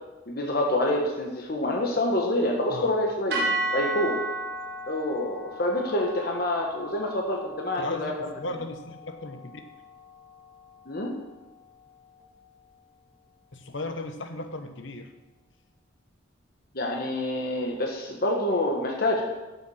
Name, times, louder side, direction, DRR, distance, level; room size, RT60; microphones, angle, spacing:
voice 1, 0.3-4.2 4.9-8.1 10.9-11.2 16.7-19.2, left 1 dB, 50° left, 0 dB, 1.3 m, -27 dB
sound 1, 3.3-11.6, right 1 dB, 55° right, 1.7 m, -35 dB
voice 2, 7.8-9.5 13.5-15.1, left 2 dB, 70° left, 7 dB, 1.1 m, -36 dB
9.6 x 7.1 x 6.4 m, 1.1 s
head